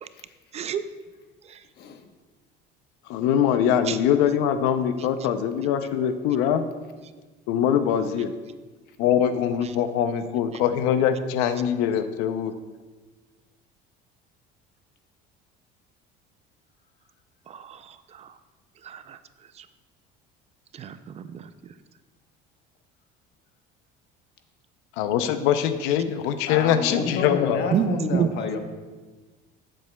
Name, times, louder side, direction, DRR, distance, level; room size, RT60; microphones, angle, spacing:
voice 1, 0.5-0.8 1.4-1.6 3.9-4.0 9.6-9.7 17.5-18.4 18.8-19.2 19.5-19.7 20.7-21.7 27.7-28.3, right 8 dB, 35° right, 11 dB, 0.4 m, -29 dB
voice 2, 3.1-6.7 7.5-8.3 9.0-12.5 25.0-27.7, left 9 dB, 85° left, 10 dB, 0.6 m, -23 dB
voice 3, 26.5-28.6, left 5 dB, 55° left, 6 dB, 1.0 m, -29 dB
14.5 x 7.6 x 2.2 m, 1.3 s
cardioid pair, 130°, 20 cm